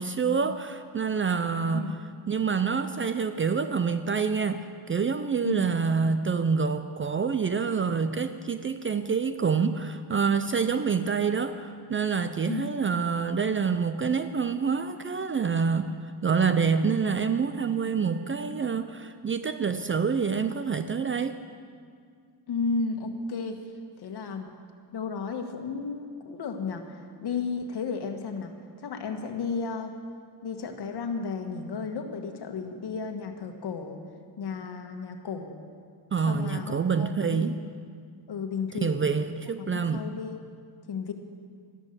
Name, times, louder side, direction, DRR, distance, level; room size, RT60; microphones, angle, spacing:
voice 1, 0.0-1.9 2.3-16.0 16.2-21.4 36.1-37.6 38.8-40.0, right 5 dB, 30° right, 10 dB, 0.5 m, -27 dB
voice 2, 22.5-23.6 24.0-24.5 24.9-28.5 28.8-29.9 30.4-34.0 34.4-35.6 36.3-37.5 38.3-39.0 39.7-40.4 40.9-41.1, left 5 dB, 60° left, 5 dB, 1.6 m, -33 dB
12.5 x 11.0 x 6.7 m, 2.1 s
cardioid pair, 95°, 46 cm